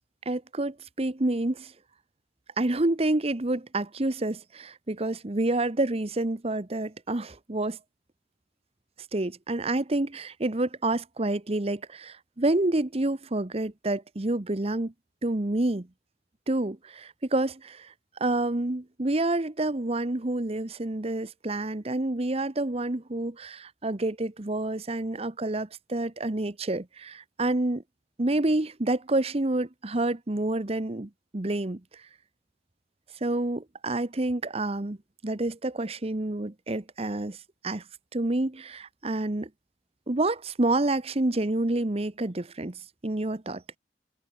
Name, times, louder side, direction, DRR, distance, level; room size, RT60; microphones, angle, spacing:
voice 1, 0.3-1.7 2.6-7.8 9.1-14.9 15.2-15.9 16.5-17.9 18.2-27.8 28.2-31.8 33.2-35.0 35.2-37.4 37.6-37.8 38.1-39.5 40.1-43.6, right 2 dB, 35° right, 1.0 m, -28 dB
head